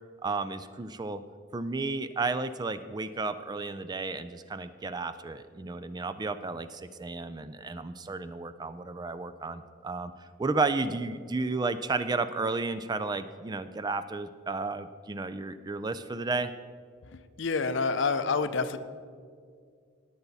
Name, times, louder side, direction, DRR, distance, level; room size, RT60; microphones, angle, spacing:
voice 1, 0.2-1.2 1.5-10.1 10.4-16.5, right 3 dB, 20° right, 12 dB, 0.3 m, -32 dB
voice 2, 17.1-18.8, left 4 dB, 60° left, 11 dB, 0.6 m, -28 dB
19.0 x 7.0 x 4.1 m, 2.1 s
head